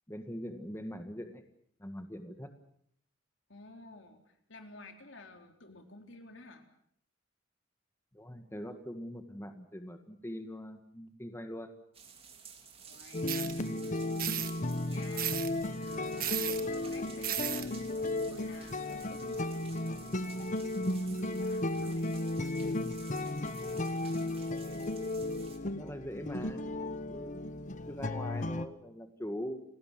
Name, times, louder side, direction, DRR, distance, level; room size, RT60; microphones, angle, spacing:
voice 1, 0.1-1.4 1.8-2.5 8.1-11.7 25.5-27.6 27.9-29.6, equal, 15° left, 7 dB, 1.7 m, -43 dB
voice 2, 3.5-6.7 12.9-15.8 16.1-24.4, left 2 dB, 70° left, 5 dB, 3.8 m, -54 dB
sound 1, 11.9-25.6, right 6 dB, 30° right, 3.3 m, -54 dB
sound 2, 13.1-28.7, left 2 dB, 40° left, 1.2 m, -35 dB
sound 3, 13.3-13.5 14.2-14.5 15.2-15.5 16.2-16.6 17.2-17.6, right 12 dB, 50° right, 1.6 m, -34 dB
29.5 x 17.5 x 7.6 m, 0.67 s
head